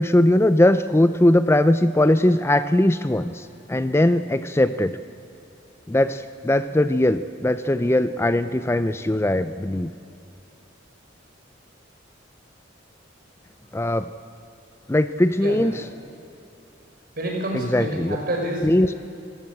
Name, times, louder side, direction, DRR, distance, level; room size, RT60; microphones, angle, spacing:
voice 1, 0.0-5.0 5.9-9.9 13.7-14.1 14.9-15.8 17.5-18.2 18.6-19.0, left 1 dB, 15° left, 12 dB, 0.4 m, -20 dB
voice 2, 17.2-18.7, right 1 dB, 50° right, 1 dB, 5.5 m, -28 dB
26.0 x 15.5 x 8.6 m, 2.7 s
head